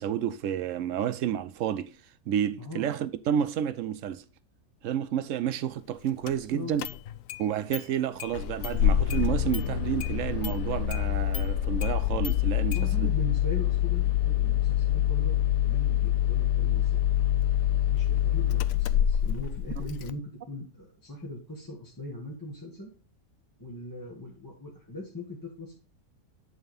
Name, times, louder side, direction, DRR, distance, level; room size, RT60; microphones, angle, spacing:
voice 1, 0.0-1.9 2.3-4.2 4.8-6.8 7.4-13.1, right 9 dB, 70° right, 0.8 m, -30 dB
voice 2, 2.6-2.9 6.5-6.8 12.7-17.1 17.4-22.9 23.6-25.7, left 1 dB, 15° left, 1.6 m, -40 dB
Engine starting, 6.3-6.4 6.8-7.4 7.7-7.8 8.2-20.1, left 11 dB, 70° left, 0.9 m, -26 dB
11.0 x 4.0 x 5.3 m
omnidirectional pair, 1.7 m